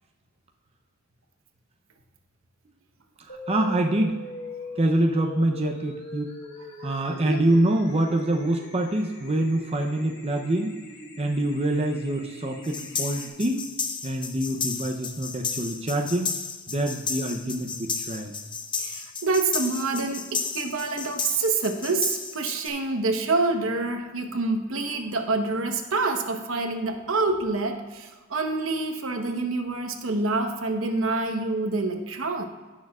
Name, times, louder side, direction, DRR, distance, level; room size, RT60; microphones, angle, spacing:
voice 1, 3.2-4.1 4.8-6.4 6.8-10.8 11.2-13.6 14.0-16.3 16.7-18.3, right 1 dB, 30° right, 2 dB, 0.6 m, -25 dB
sound 1, 3.3-13.3, left 2 dB, 55° left, 1.3 m, -41 dB
voice 2, 6.8-7.5 18.8-32.5, right 3 dB, 70° right, 4 dB, 1.0 m, -27 dB
sound 2, 12.6-22.7, left 5 dB, 25° left, 0.6 m, -33 dB
16.0 x 6.6 x 2.4 m, 1.3 s
head